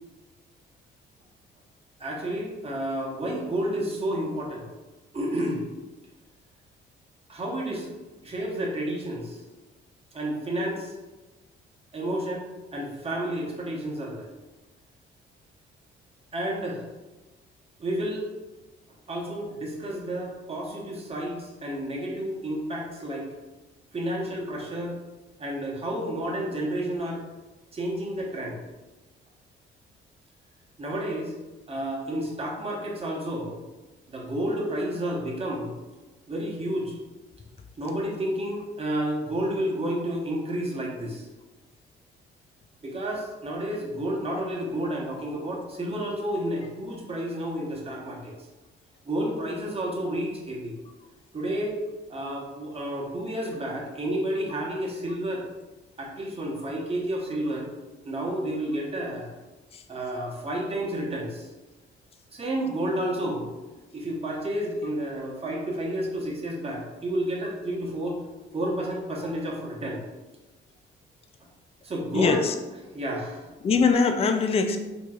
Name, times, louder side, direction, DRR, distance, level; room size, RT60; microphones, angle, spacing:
voice 1, 2.0-4.6 5.1-5.6 7.3-7.9 8.2-9.4 10.1-10.9 11.9-14.3 16.3-16.8 17.8-18.3 19.1-23.3 23.9-25.0 25.4-27.2 27.7-28.6 30.8-31.3 31.7-33.6 34.1-35.7 36.3-36.9 37.8-41.3 42.8-48.3 49.0-50.7 51.3-51.8 52.1-55.4 56.0-57.7 58.0-59.3 59.9-61.5 62.3-63.5 63.9-68.2 68.5-70.0 71.8-72.4 72.9-73.5, right 1 dB, 30° right, -2 dB, 1.0 m, -30 dB
voice 2, 72.1-72.5 73.6-74.8, left 5 dB, 30° left, 6 dB, 0.4 m, -22 dB
4.6 x 2.9 x 2.4 m, 1.1 s
cardioid pair, 90°, 20 cm